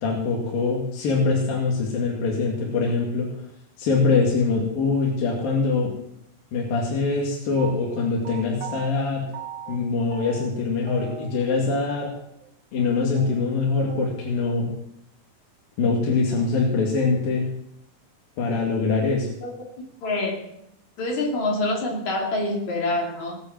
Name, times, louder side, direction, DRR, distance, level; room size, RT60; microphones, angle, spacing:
voice 1, 0.0-3.3 3.8-5.9 6.5-9.3 9.7-12.1 12.7-14.7 15.8-17.5 18.4-19.3, left 4 dB, 65° left, -2 dB, 4.0 m, -23 dB
sound 1, 7.6-8.9 9.3-9.8 10.1-10.6 10.9-11.7 12.0-12.1 12.4-12.5 12.8-12.9 13.1-14.1, right 9 dB, 65° right, 3.0 m, -38 dB
voice 2, 20.0-20.5 21.0-23.4, left 2 dB, 50° left, 0 dB, 4.1 m, -26 dB
19.5 x 7.9 x 7.5 m, 0.78 s
omnidirectional pair, 4.5 m